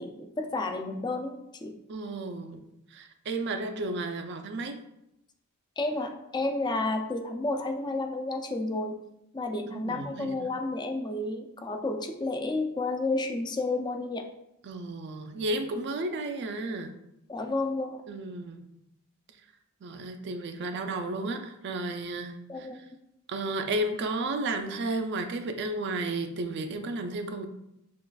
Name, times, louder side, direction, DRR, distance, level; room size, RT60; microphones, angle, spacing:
voice 1, 0.0-1.7 5.8-9.0 9.3-14.3 17.3-18.0 22.5-22.8, left 2 dB, 20° left, 4 dB, 0.4 m, -31 dB
voice 2, 1.9-2.6 2.9-4.8 9.7-10.5 14.6-16.9 18.1-18.6 19.8-22.3 22.6-22.7 23.3-27.4, right 2 dB, 55° right, 6 dB, 0.4 m, -33 dB
6.1 x 2.4 x 2.3 m, 0.83 s
head